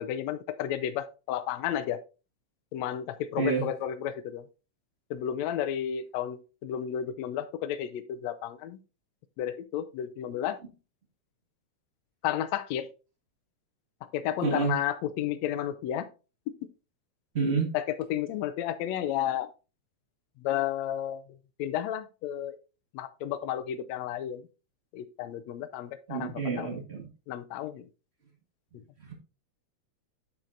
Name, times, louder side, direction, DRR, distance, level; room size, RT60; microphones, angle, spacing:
voice 1, 0.0-2.0 2.7-4.4 5.1-8.8 9.4-10.6 12.2-12.9 14.1-16.1 17.4-19.5 20.4-21.2 21.6-22.6 22.9-24.4 24.9-26.8 27.3-27.9, left 10 dB, 75° left, 1.7 m, -32 dB
voice 2, 14.4-14.7 17.3-17.7 26.1-27.0 29.1-29.2, right 4 dB, 35° right, 1.1 m, -28 dB
8.7 x 7.3 x 2.6 m
omnidirectional pair, 3.5 m